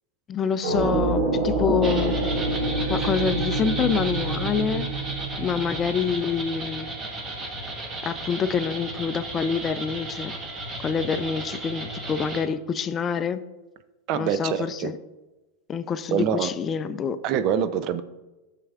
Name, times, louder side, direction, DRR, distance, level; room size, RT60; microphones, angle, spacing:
voice 1, 0.3-2.1 2.9-4.9 5.4-6.9 8.0-10.4 10.8-13.4 14.1-15.0 15.7-17.2, left 6 dB, 30° left, 12 dB, 0.4 m, -26 dB
sound 1, 0.6-6.5, right 2 dB, 80° right, 1.4 m, -27 dB
sound 2, 1.8-12.4, right 1 dB, 30° right, 1.4 m, -34 dB
voice 2, 14.1-14.9 16.1-16.5 17.2-18.0, right 8 dB, 50° right, 12 dB, 0.5 m, -25 dB
11.0 x 6.6 x 2.4 m, 1.1 s
hypercardioid pair, 110°, 0 cm